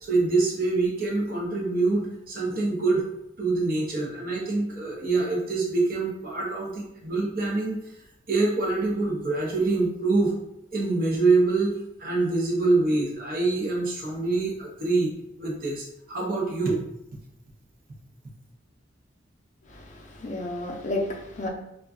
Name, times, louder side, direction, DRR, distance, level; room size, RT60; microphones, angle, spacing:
voice 1, 0.0-3.0 3.4-7.8 8.3-10.3 10.7-16.8, right 3 dB, 50° right, -1 dB, 0.7 m, -25 dB
voice 2, 19.7-21.5, left 2 dB, 40° left, 0 dB, 0.5 m, -32 dB
2.4 x 2.2 x 3.5 m, 0.82 s
head